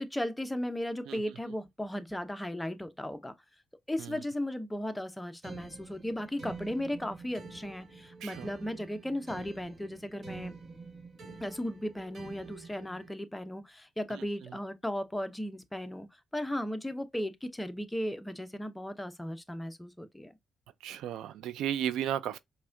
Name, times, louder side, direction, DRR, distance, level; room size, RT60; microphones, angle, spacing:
voice 1, 0.0-3.3 3.9-10.6 11.4-20.3, left 1 dB, 10° left, 0.5 m, -36 dB
sound 1, 5.4-13.1, right 4 dB, 55° right, 1.2 m, -47 dB
voice 2, 20.8-22.4, right 10 dB, 85° right, 0.3 m, -34 dB
4.7 x 2.2 x 2.5 m
cardioid pair, 90°, 0 cm